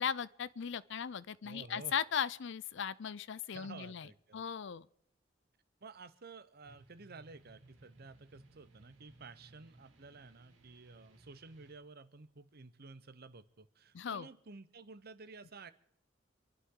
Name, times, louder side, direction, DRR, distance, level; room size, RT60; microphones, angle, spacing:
voice 1, 0.0-4.1 4.3-4.9 13.9-14.3, left 7 dB, 65° left, 0.5 m, -37 dB
voice 2, 1.4-1.9 3.5-4.4 5.8-15.7, right 4 dB, 50° right, 0.8 m, -53 dB
sound 1, 6.6-11.7, right 2 dB, 75° right, 2.8 m, -62 dB
28.0 x 11.5 x 3.8 m
head